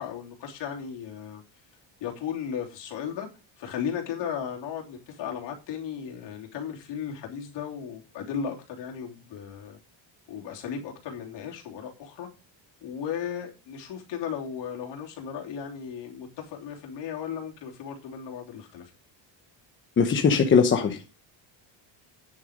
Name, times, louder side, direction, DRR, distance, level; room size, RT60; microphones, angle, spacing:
voice 1, 0.0-1.4 2.0-3.3 3.6-9.8 10.3-12.3 12.8-18.8, left 8 dB, 60° left, 3.3 m, -35 dB
voice 2, 20.0-21.1, left 6 dB, 25° left, 1.0 m, -20 dB
9.7 x 7.6 x 5.1 m
cardioid pair, 180°, 47 cm